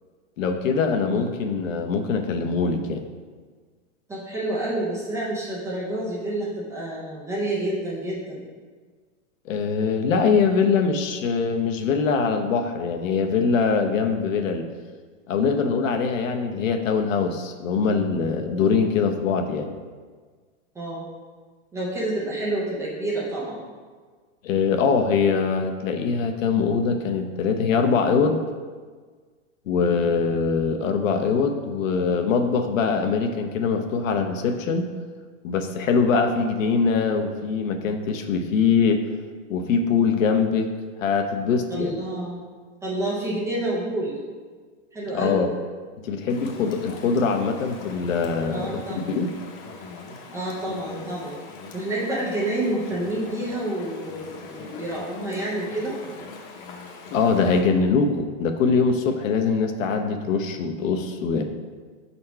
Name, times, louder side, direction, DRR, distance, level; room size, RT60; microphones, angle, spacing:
voice 1, 0.4-3.0 9.5-14.6 15.3-19.7 24.4-28.4 29.7-34.9 35.4-39.0 39.5-40.7 41.0-42.0 45.1-45.5 46.0-49.3 57.1-61.4, left 5 dB, 75° left, 5 dB, 0.8 m, -23 dB
voice 2, 4.1-8.4 20.7-21.0 21.7-23.6 29.7-30.0 41.7-42.4 42.8-44.2 44.9-45.5 48.5-49.1 50.3-51.4 51.7-56.0, right 1 dB, 10° right, -6 dB, 0.4 m, -28 dB
Chatter / Stream, 46.3-57.6, left 3 dB, 30° left, 0.8 m, -40 dB
4.4 x 4.2 x 5.6 m, 1.5 s
supercardioid pair, 150°, 39 cm